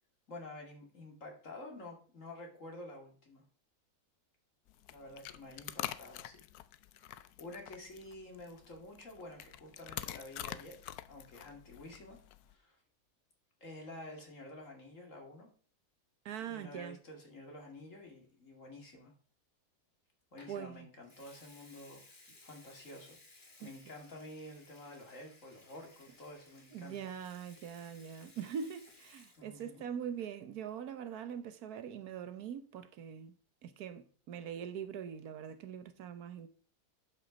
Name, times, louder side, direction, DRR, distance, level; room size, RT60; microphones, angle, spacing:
voice 1, 0.3-3.4 4.9-6.5 6.9-10.8 11.1-12.8 13.6-15.5 16.4-19.1 20.3-23.2 23.6-27.0 29.4-29.9, left 1 dB, 55° left, 3.0 m, -50 dB
sound 1, 4.7-12.5, left 12 dB, 80° left, 1.1 m, -46 dB
voice 2, 16.2-17.0 20.5-20.9 23.6-23.7 26.7-33.3 33.6-36.5, right 8 dB, 75° right, 1.3 m, -42 dB
Water tap faucet / Sink (filling or washing) / Liquid, 20.4-20.6 21.0-29.8 30.1-30.4, left 2 dB, 30° left, 2.0 m, -60 dB
11.5 x 5.8 x 5.2 m
omnidirectional pair, 1.6 m